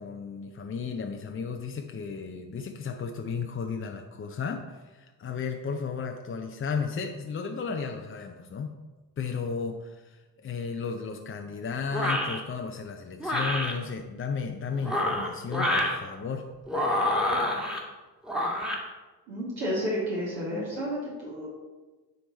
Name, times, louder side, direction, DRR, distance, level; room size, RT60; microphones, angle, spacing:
voice 1, 0.0-8.7 9.2-16.5, left 5 dB, 25° left, 4 dB, 0.6 m, -34 dB
sound 1, 11.9-12.4 13.2-13.7 14.7-16.0 16.7-17.8 18.3-18.8, left 1 dB, ahead, 1.4 m, -27 dB
voice 2, 19.3-21.5, equal, 70° right, -7 dB, 2.1 m, -31 dB
9.2 x 3.3 x 4.2 m, 1.2 s
hypercardioid pair, 45°, 47 cm